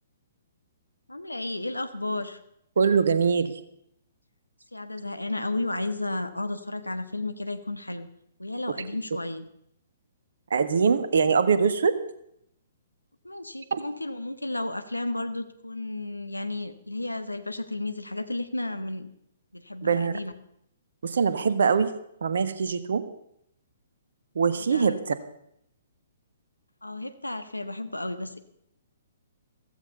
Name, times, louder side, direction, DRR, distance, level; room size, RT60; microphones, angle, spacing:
voice 1, 1.1-2.4 4.7-8.1 8.4-9.5 13.2-19.1 19.5-20.3 24.5-25.0 26.8-28.4, left 2 dB, 85° left, 10 dB, 1.4 m, -33 dB
voice 2, 2.8-3.5 10.5-12.0 13.7-13.8 19.8-20.1 21.0-21.9 22.2-23.0 24.3-25.1, right 5 dB, 60° right, 11 dB, 1.5 m, -23 dB
15.5 x 15.0 x 5.4 m, 0.74 s
figure-of-eight pair, 120°, 0 cm